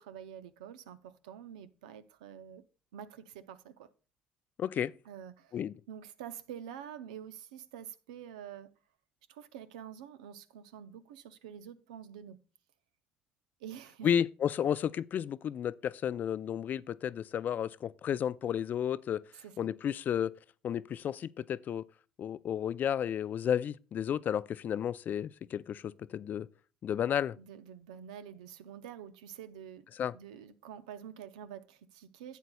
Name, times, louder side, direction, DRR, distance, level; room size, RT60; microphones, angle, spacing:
voice 1, 0.0-2.6 2.9-3.9 5.1-5.5 5.9-8.7 9.3-12.4 13.6-14.1 19.3-19.7 27.4-29.8 30.1-32.4, right 9 dB, 90° right, 0.5 m, -47 dB
voice 2, 4.6-4.9 5.5-5.7 14.0-19.2 19.6-20.3 20.6-21.8 22.2-26.5 26.8-27.4 30.0-30.1, left 9 dB, 50° left, 0.3 m, -32 dB
11.5 x 8.1 x 2.2 m
hypercardioid pair, 60°, 4 cm